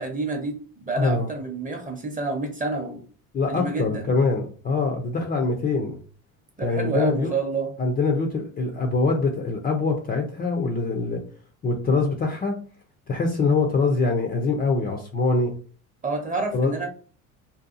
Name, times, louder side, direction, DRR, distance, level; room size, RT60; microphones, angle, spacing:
voice 1, 0.0-3.0 3.5-4.0 6.6-7.7 16.0-16.9, right 3 dB, 20° right, 3 dB, 0.7 m, -28 dB
voice 2, 0.9-1.3 3.3-6.0 6.6-7.3 7.8-11.2 11.6-12.5 13.1-15.5 16.5-16.7, left 3 dB, 20° left, 2 dB, 0.4 m, -24 dB
2.7 x 2.2 x 2.5 m, 0.41 s
supercardioid pair, 85°, 42 cm